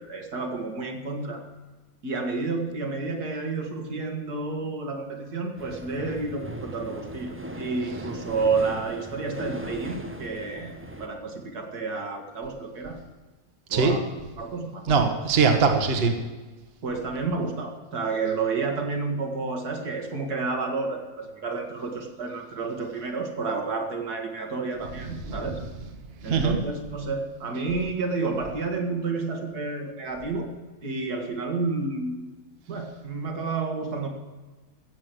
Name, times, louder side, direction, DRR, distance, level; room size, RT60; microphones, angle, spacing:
voice 1, 0.0-1.4 2.0-10.7 11.0-13.0 13.7-14.1 14.4-15.0 16.8-25.6 26.2-30.5 30.8-32.3 32.7-34.1, right 4 dB, 75° right, 3 dB, 2.3 m, -30 dB
sound 1, 5.6-11.1, right 1 dB, 10° right, 0.7 m, -38 dB
voice 2, 14.8-16.2 25.1-25.6 26.2-26.6, right 5 dB, 40° right, 5 dB, 1.4 m, -22 dB
15.0 x 7.5 x 7.7 m, 1.3 s
omnidirectional pair, 1.7 m